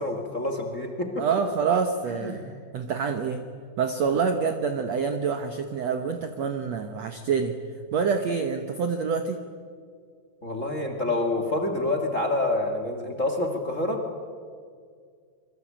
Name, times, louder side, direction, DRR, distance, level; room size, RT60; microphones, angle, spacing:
voice 1, 0.0-1.2 2.2-2.4 10.4-14.0, left 2 dB, 25° left, 5 dB, 1.7 m, -27 dB
voice 2, 1.2-3.4 3.8-7.6 7.9-9.4, right 5 dB, 85° right, 7 dB, 1.4 m, -27 dB
27.0 x 23.5 x 8.8 m, 2.1 s
omnidirectional pair, 4.9 m